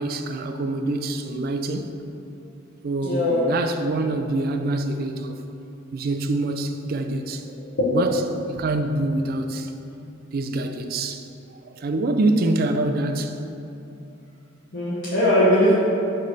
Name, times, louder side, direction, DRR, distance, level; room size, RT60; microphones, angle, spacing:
voice 1, 0.0-2.0 2.8-5.4 5.9-7.5 7.9-9.7 10.3-11.3 11.6-13.4, right 2 dB, 50° right, 0.4 m, -25 dB
voice 2, 3.0-3.4 7.8-8.1 14.7-15.7, left 1 dB, 60° left, 1.1 m, -20 dB
6.6 x 3.3 x 5.4 m
head